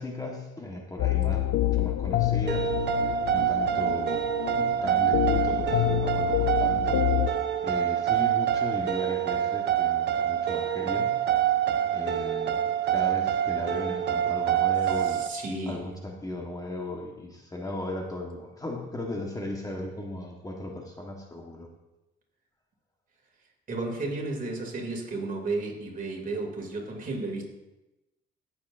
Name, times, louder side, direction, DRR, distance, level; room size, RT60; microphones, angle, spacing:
voice 1, 0.0-2.7 3.0-11.2 11.9-12.6 12.9-15.2 15.7-21.7, left 1 dB, 20° left, 1 dB, 1.4 m, -37 dB
sound 1, 1.0-7.3, left 13 dB, 85° left, 0.5 m, -27 dB
sound 2, 2.5-15.3, right 10 dB, 60° right, 0.7 m, -26 dB
voice 2, 15.0-15.8 23.7-27.4, right 2 dB, 45° right, 0 dB, 2.8 m, -33 dB
17.0 x 7.2 x 2.7 m, 1.0 s
cardioid pair, 90°, 20 cm